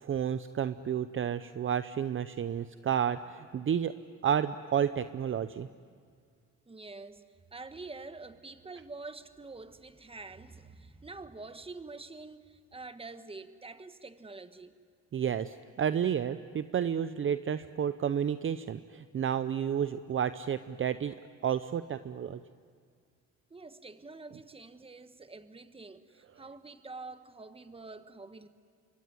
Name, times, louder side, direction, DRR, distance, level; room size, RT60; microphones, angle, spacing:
voice 1, 0.0-3.9 4.2-5.7 15.1-21.2 21.4-22.4, right 8 dB, 40° right, 12 dB, 0.7 m, -31 dB
voice 2, 6.7-7.2 7.5-14.7 23.5-28.5, right 3 dB, 20° right, 10 dB, 1.4 m, -46 dB
27.0 x 23.0 x 9.5 m, 2.1 s
cardioid pair, 90°, 30 cm